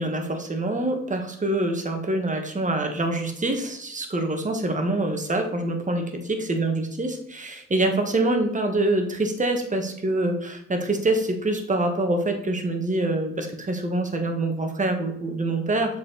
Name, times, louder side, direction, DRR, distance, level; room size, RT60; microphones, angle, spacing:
voice 1, 0.0-16.0, right 2 dB, 25° right, 5 dB, 1.3 m, -25 dB
7.4 x 4.4 x 3.9 m, 0.77 s
cardioid pair, 90°, 30 cm